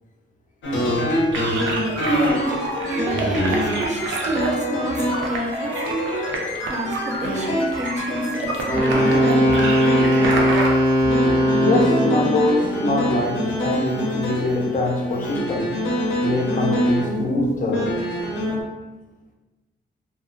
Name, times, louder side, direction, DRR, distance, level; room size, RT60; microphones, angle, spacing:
sound 1, 0.6-10.6 11.0-18.6, equal, 85° left, 0.6 m, -25 dB
sound 2, 1.3-10.7, right 2 dB, 85° right, 0.4 m, -29 dB
voice 1, 2.0-2.6 2.9-9.6, right 1 dB, 40° right, 0.5 m, -28 dB
Wind instrument woodwind instrument, 8.7-12.4, equal, 10° left, 0.7 m, -19 dB
voice 2, 11.6-15.9 16.2-18.0, left 2 dB, 45° left, 0.4 m, -23 dB
2.4 x 2.0 x 2.5 m
cardioid pair, 100°, 19 cm